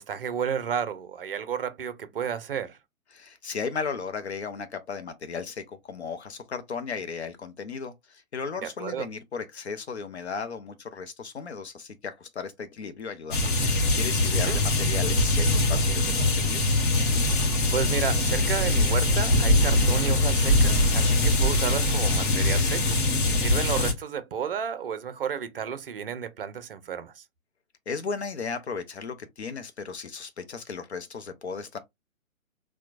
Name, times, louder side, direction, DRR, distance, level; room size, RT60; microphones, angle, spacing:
voice 1, 0.0-2.8 8.6-9.1 14.3-14.6 17.7-23.0 23.4-27.2, right 8 dB, 45° right, 0.6 m, -32 dB
voice 2, 3.1-16.6 27.9-31.8, left 5 dB, 55° left, 0.6 m, -35 dB
sound 1, 13.3-23.9, left 2 dB, 40° left, 1.0 m, -22 dB
4.3 x 2.2 x 2.4 m
figure-of-eight pair, 125°, 41 cm